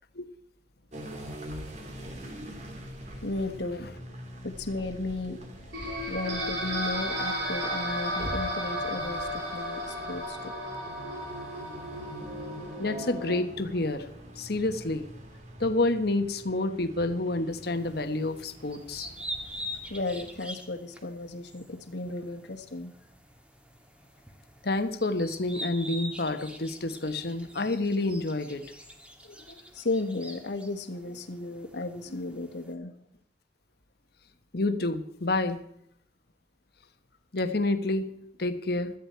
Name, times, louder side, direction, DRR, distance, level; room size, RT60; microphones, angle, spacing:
sound 1, 0.9-20.4, equal, 40° right, 2.8 m, -44 dB
voice 1, 3.2-3.9 4.4-5.4 6.1-9.8 10.1-10.5 19.9-22.9 29.2-33.0, left 2 dB, 80° left, 7 dB, 1.7 m, -34 dB
sound 2, 5.7-13.4, equal, 70° right, 7.5 m, -33 dB
voice 2, 12.8-14.0 14.4-15.1 15.6-19.1 24.6-28.6 34.5-35.6 37.3-38.1 38.4-38.9, left 2 dB, 60° left, 9 dB, 1.3 m, -28 dB
sound 3, 17.5-32.7, equal, 5° right, 1.7 m, -45 dB
17.0 x 13.0 x 4.6 m, 0.73 s
head